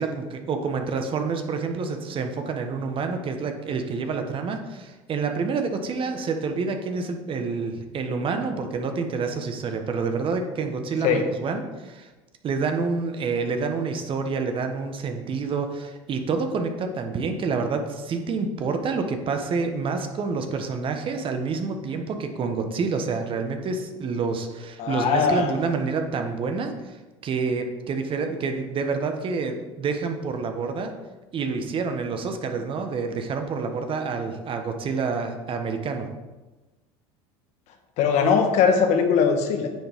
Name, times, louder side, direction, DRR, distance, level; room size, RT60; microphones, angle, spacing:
voice 1, 0.0-12.1 12.4-27.0 27.2-30.9 31.3-36.1, right 4 dB, 40° right, 5 dB, 1.3 m, -28 dB
voice 2, 24.8-25.5 38.0-39.7, left 6 dB, 55° left, 5 dB, 1.4 m, -20 dB
9.5 x 7.1 x 3.6 m, 1.2 s
hypercardioid pair, 85°, 14 cm